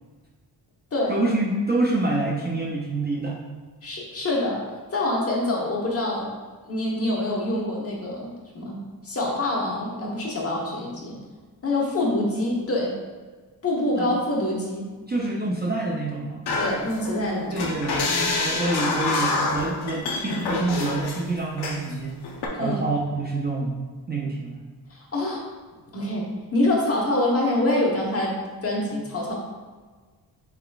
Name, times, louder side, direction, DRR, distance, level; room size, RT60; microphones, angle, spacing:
voice 1, 1.1-3.4 13.9-14.2 15.1-16.4 17.5-22.2 22.5-23.8 24.1-24.6, right 2 dB, 25° right, -3 dB, 0.4 m, -27 dB
voice 2, 3.8-4.6 4.9-6.3 6.6-11.2 11.6-13.0 13.6-14.9 16.6-17.7 22.6-22.8 24.9-25.4 25.9-28.3 28.6-29.3, left 1 dB, 35° left, -3 dB, 1.0 m, -25 dB
sound 1, 16.5-17.2 17.6-21.2 21.6-21.9 22.2-22.5, left 3 dB, 70° left, 0.7 m, -27 dB
4.3 x 3.9 x 2.3 m, 1.4 s
wide cardioid pair, 115°, 41 cm